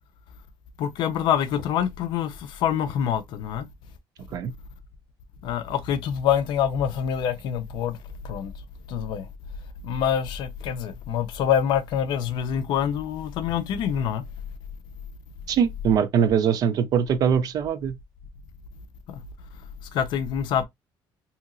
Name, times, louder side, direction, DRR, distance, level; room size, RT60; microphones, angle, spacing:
voice 1, 0.8-3.7 5.4-8.0 8.2-8.5 8.9-9.3 9.8-14.2 19.1-19.2 19.9-20.6, left 9 dB, 60° left, 0.5 m, -26 dB
voice 2, 15.5-17.9, right 7 dB, 45° right, 0.4 m, -22 dB
2.8 x 2.8 x 2.4 m
cardioid pair, 175°, 9 cm